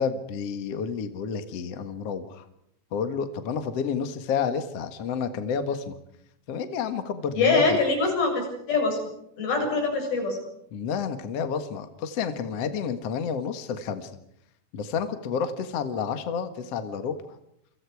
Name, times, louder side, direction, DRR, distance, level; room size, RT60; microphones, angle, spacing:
voice 1, 0.0-2.4 2.9-6.0 6.5-7.8 10.7-14.1 14.7-17.2, left 6 dB, 50° left, 9 dB, 2.4 m, -30 dB
voice 2, 7.4-9.0 9.4-10.4, left 3 dB, 90° left, 2 dB, 9.4 m, -23 dB
28.5 x 25.5 x 4.9 m, 0.74 s
omnidirectional pair, 4.1 m